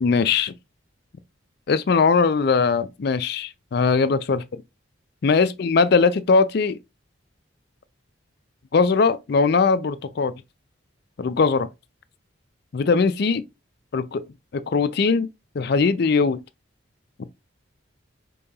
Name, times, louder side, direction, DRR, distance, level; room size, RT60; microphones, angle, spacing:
voice 1, 0.0-0.5 1.7-4.6 5.2-6.8 8.7-10.3 11.2-11.7 12.7-13.4 13.9-14.2 14.5-15.3 15.5-16.4, left 4 dB, 50° left, 0.4 m, -20 dB
5.4 x 3.7 x 2.3 m
head